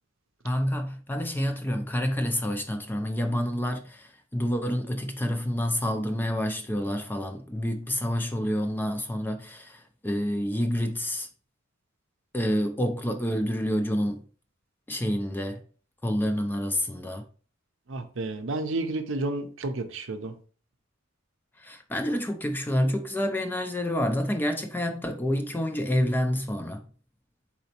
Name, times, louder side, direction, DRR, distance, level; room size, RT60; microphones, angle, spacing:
voice 1, 0.4-11.3 12.3-14.2 14.9-15.6 16.0-17.2 21.6-26.8, equal, 10° left, 0.3 m, -28 dB
voice 2, 17.9-20.3, right 2 dB, 60° right, 0.6 m, -31 dB
4.2 x 4.0 x 2.9 m
head